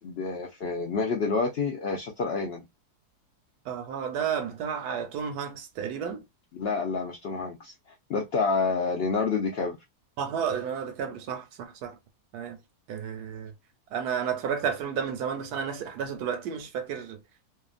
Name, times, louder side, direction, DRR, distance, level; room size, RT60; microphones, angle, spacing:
voice 1, 0.0-2.6 6.5-7.7 8.1-9.8, left 4 dB, 70° left, 0.6 m, -28 dB
voice 2, 3.6-6.2 10.2-12.0 12.3-12.6 12.9-13.5 13.9-17.2, right 7 dB, 85° right, 1.3 m, -32 dB
2.8 x 2.4 x 2.4 m
omnidirectional pair, 1.6 m